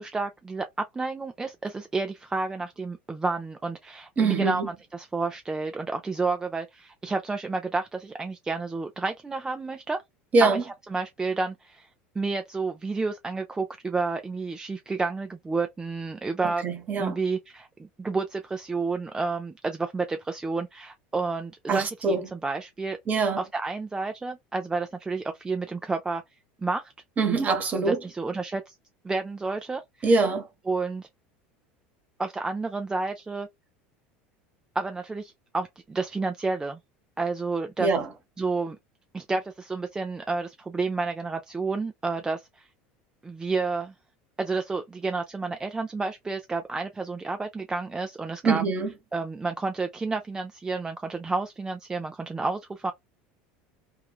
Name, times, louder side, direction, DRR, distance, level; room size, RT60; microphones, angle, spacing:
voice 1, 0.0-10.0 10.4-10.6 10.9-11.9 12.2-16.6 17.0-23.0 23.4-26.2 26.6-26.9 27.7-28.7 29.0-30.1 30.7-31.1 32.2-33.5 34.8-36.8 37.2-37.9 38.4-38.8 39.1-42.7 43.2-43.9 44.4-48.6 49.1-52.9, right 3 dB, 15° right, 0.3 m, -30 dB
voice 2, 4.2-4.7 10.3-10.6 16.4-17.2 21.7-22.2 23.1-23.4 27.2-28.0 30.0-30.5 37.8-38.1 48.4-48.9, right 4 dB, 35° right, 0.9 m, -23 dB
3.0 x 2.3 x 2.3 m
supercardioid pair, 100°, 5 cm